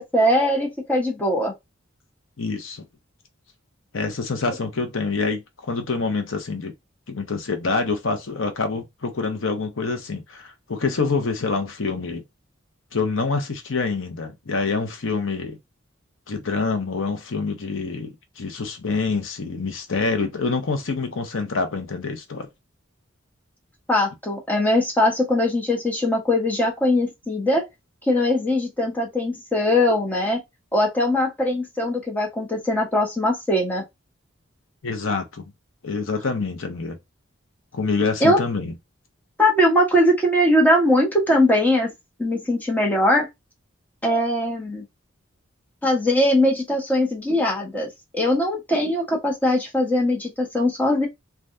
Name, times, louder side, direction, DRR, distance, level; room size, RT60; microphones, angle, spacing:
voice 1, 0.0-1.5 23.9-27.7 28.1-30.4 30.7-33.8 38.2-38.4 39.4-41.9 42.2-43.3 44.0-44.8 45.8-51.1, left 1 dB, 10° left, 1.1 m, -21 dB
voice 2, 2.4-2.8 3.9-6.7 7.1-12.2 12.9-15.6 16.3-22.5 34.8-35.5 35.8-37.0 37.7-38.7, left 4 dB, 80° left, 0.8 m, -26 dB
3.4 x 2.4 x 2.6 m
head